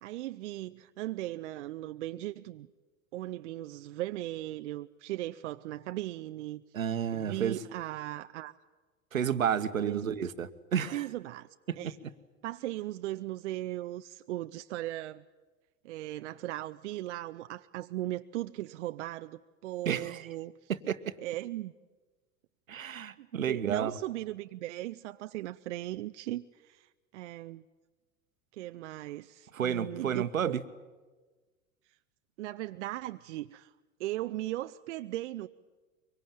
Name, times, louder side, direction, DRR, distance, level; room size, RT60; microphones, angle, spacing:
voice 1, 0.0-2.7 3.1-6.6 7.1-8.5 9.8-10.1 10.9-11.5 11.8-12.0 12.4-15.2 15.8-20.7 21.2-21.7 23.2-27.6 28.5-30.5 32.4-33.7 34.0-35.5, right 15 dB, 55° right, 10 dB, 0.7 m, -38 dB
voice 2, 6.7-7.6 9.1-11.1 11.7-11.8 19.8-20.3 20.7-21.2 22.7-23.9 29.5-30.6, right 8 dB, 75° right, 13 dB, 1.3 m, -31 dB
24.0 x 23.5 x 9.0 m, 1.3 s
figure-of-eight pair, 85°, 41 cm